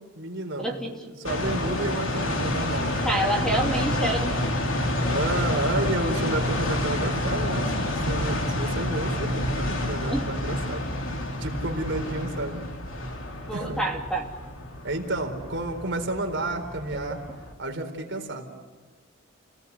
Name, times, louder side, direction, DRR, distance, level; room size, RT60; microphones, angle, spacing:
voice 1, 0.0-0.7 1.0-3.4 5.0-10.9 11.4-12.6 13.5-13.8 14.8-17.2 17.6-18.5, right 2 dB, 55° right, 3 dB, 4.0 m, -31 dB
voice 2, 0.6-1.0 3.0-4.5 4.8-5.2 10.1-10.3 13.5-14.2, right 1 dB, 5° left, 0 dB, 2.8 m, -28 dB
sound 1, 1.2-17.5, left 1 dB, 65° left, 3.6 m, -29 dB
29.5 x 19.0 x 8.3 m, 1.4 s
head